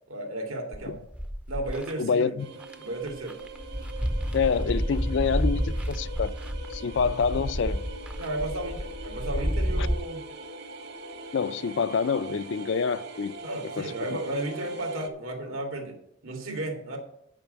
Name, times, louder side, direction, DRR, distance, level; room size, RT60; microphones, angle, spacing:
voice 1, 0.1-1.0 1.5-2.3 2.8-3.4 8.2-10.2 13.4-16.0 16.2-17.0, right 1 dB, 85° right, 2.3 m, -33 dB
sound 1, 0.7-1.9 2.6-2.7 3.1-9.9, equal, 5° right, 0.5 m, -30 dB
voice 2, 2.0-2.5 4.3-6.3 6.7-7.8 9.8-9.9 11.3-13.3 13.8-13.9, left 5 dB, 65° left, 0.4 m, -27 dB
sound 2, 2.4-15.1, right 2 dB, 55° right, 1.2 m, -42 dB
8.9 x 5.3 x 8.0 m
head